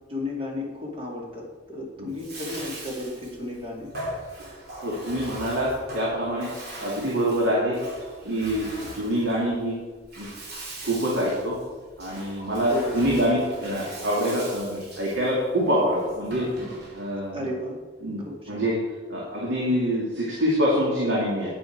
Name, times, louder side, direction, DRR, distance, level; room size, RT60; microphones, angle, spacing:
voice 1, 0.1-3.9 12.7-13.0 14.0-14.1 17.3-17.8 18.2-18.6, left 1 dB, 30° right, -2 dB, 2.6 m, -33 dB
Bathtub (filling or washing), 2.1-17.2, right 1 dB, 60° right, 2.9 m, -40 dB
voice 2, 4.8-6.5 6.8-7.8 8.2-9.8 10.2-10.3 10.8-11.6 12.0-16.5 16.9-17.5 18.0-18.8 19.1-21.5, equal, 75° right, -5 dB, 2.3 m, -25 dB
9.4 x 9.4 x 4.7 m, 1.4 s
head